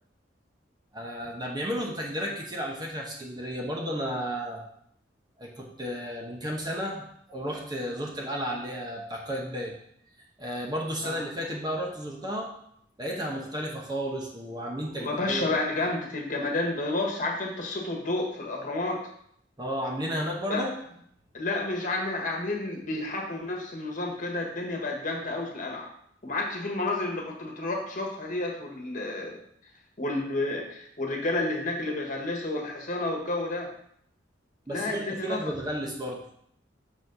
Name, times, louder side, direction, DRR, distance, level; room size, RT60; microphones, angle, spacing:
voice 1, 0.9-4.6 5.4-9.7 10.4-12.5 13.0-15.5 19.6-20.7 34.7-36.3, equal, 25° right, -1 dB, 1.0 m, -33 dB
voice 2, 14.9-19.0 20.5-20.6 21.3-25.9 26.2-29.4 30.0-33.7 34.7-35.5, left 2 dB, 45° left, 1 dB, 1.5 m, -30 dB
6.4 x 4.2 x 5.4 m, 0.68 s
head